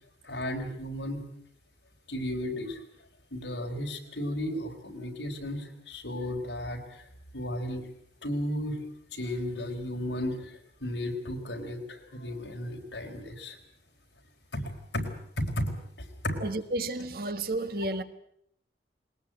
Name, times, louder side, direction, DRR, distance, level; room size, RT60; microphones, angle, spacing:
voice 1, 0.2-1.2 2.1-2.8 3.3-7.1 7.3-7.9 8.2-8.8 9.1-13.6 14.5-16.4, left 1 dB, 90° left, 2 dB, 4.5 m, -34 dB
voice 2, 16.4-18.0, right 2 dB, 55° right, 10 dB, 1.6 m, -31 dB
21.5 x 19.5 x 9.0 m, 0.70 s
head